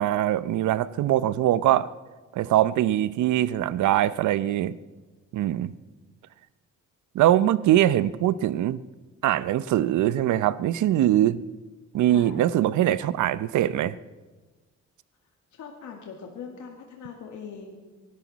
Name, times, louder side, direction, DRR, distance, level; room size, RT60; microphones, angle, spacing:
voice 1, 0.0-1.9 2.3-4.7 5.3-5.7 7.1-8.8 9.2-11.4 11.9-14.0, right 12 dB, 75° right, 17 dB, 0.7 m, -22 dB
voice 2, 12.1-12.7 15.5-17.8, left 6 dB, 75° left, 1 dB, 2.0 m, -41 dB
23.5 x 12.5 x 4.1 m, 1.2 s
cardioid pair, 90°, 30 cm